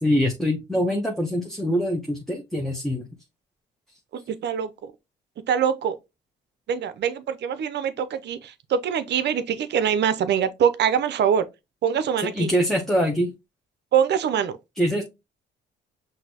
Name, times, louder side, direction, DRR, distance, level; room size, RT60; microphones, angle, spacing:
voice 1, 0.0-3.1 12.2-13.3 14.8-15.0, equal, ahead, 0.8 m, -24 dB
voice 2, 4.1-4.9 5.5-6.0 6.7-11.4 11.8-12.5 13.9-14.5, right 8 dB, 60° right, 0.6 m, -24 dB
5.8 x 2.7 x 2.8 m
cardioid pair, 90°, 20 cm